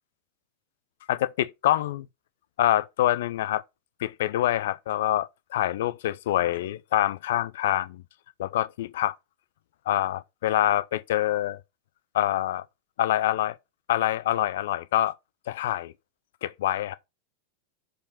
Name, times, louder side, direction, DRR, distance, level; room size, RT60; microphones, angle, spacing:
voice 1, 1.1-2.1 2.6-3.6 4.0-8.0 8.4-9.2 9.9-11.6 12.1-12.6 13.0-13.6 13.9-15.1 15.5-15.9 16.4-16.9, left 13 dB, 60° left, 0.6 m, -25 dB
6.7 x 5.2 x 5.8 m
figure-of-eight pair, 90°, 0 cm